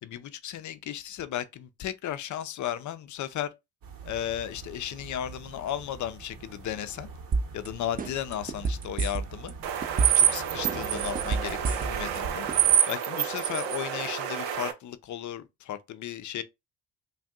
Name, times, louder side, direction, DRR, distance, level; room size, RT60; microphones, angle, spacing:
voice 1, 0.0-3.5 4.0-7.1 7.5-9.6 10.1-12.5 12.9-16.4, left 11 dB, 45° left, 0.5 m, -35 dB
sound 1, 3.8-12.8, right 5 dB, 60° right, 1.1 m, -43 dB
sound 2, 7.3-7.7 8.0-9.5 9.8-10.3 10.6-12.2 12.5-12.6, right 4 dB, 20° right, 0.4 m, -27 dB
sound 3, 9.6-14.7, right 10 dB, 80° right, 0.7 m, -27 dB
2.6 x 2.3 x 3.5 m
supercardioid pair, 65°, 40 cm